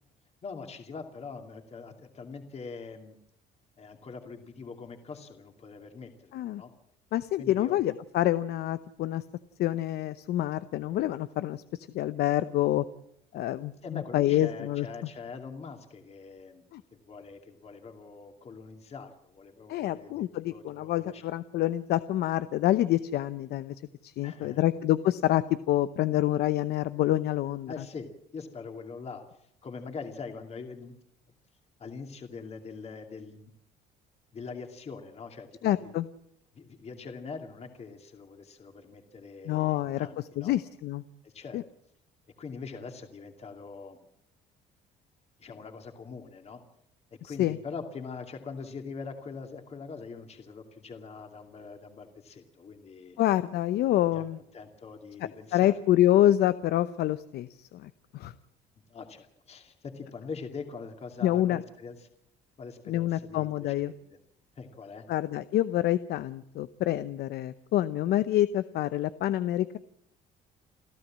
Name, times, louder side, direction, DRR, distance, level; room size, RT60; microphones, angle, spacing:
voice 1, 0.4-3.2 3.8-6.7 7.4-7.8 13.8-16.6 16.9-21.2 24.2-24.7 27.7-31.0 31.8-33.5 34.3-36.0 36.5-40.5 41.2-41.6 42.4-44.0 45.4-46.6 47.2-53.2 54.1-54.2 54.5-55.8 58.9-62.1 62.6-64.0 64.6-65.1, left 5 dB, 40° left, 4 dB, 2.6 m, -43 dB
voice 2, 7.1-9.2 9.6-11.6 11.9-12.8 13.3-14.9 16.7-16.8 19.7-23.7 24.0-27.7 35.6-36.1 39.5-40.1 40.4-41.0 41.5-41.6 47.2-47.6 53.2-54.4 55.5-58.3 61.2-61.6 62.9-63.9 65.1-69.8, left 13 dB, 75° left, 13 dB, 0.8 m, -27 dB
30.0 x 13.0 x 7.5 m, 0.76 s
cardioid pair, 110°, 17 cm